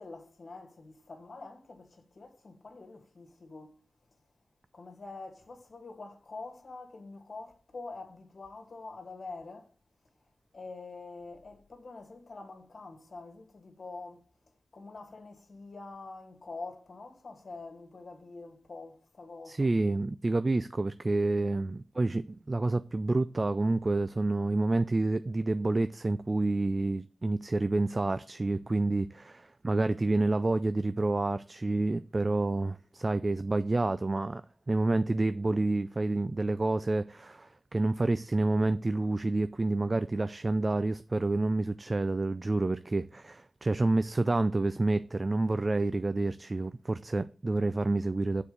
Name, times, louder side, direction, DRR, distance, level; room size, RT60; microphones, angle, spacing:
voice 1, 0.0-3.8 4.7-9.7 10.5-14.2 14.7-19.7, left 3 dB, 60° left, 1.9 m, -46 dB
voice 2, 19.5-34.4 34.7-48.4, right 2 dB, 35° right, 0.4 m, -28 dB
7.0 x 4.6 x 6.7 m
cardioid pair, 60°, 0 cm